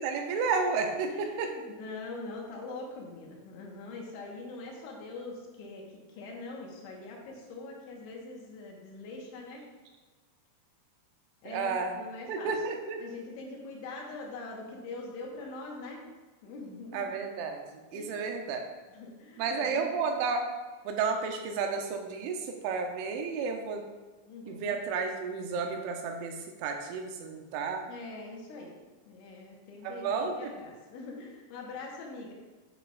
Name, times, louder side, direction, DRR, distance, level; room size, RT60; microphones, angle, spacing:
voice 1, 0.0-1.5 11.5-12.0 12.3-13.0 16.9-17.6 17.9-18.6 19.4-20.5 20.9-23.9 24.5-27.9 29.8-30.5, right 5 dB, 80° right, 4 dB, 2.8 m, -32 dB
voice 2, 1.1-5.8 6.1-9.6 11.4-12.5 13.0-16.0 16.4-17.1 17.9-18.2 18.9-19.9 24.3-24.7 27.9-28.7 29.0-32.3, left 3 dB, 75° left, -1 dB, 3.4 m, -43 dB
10.0 x 6.6 x 2.3 m, 1.3 s
omnidirectional pair, 5.8 m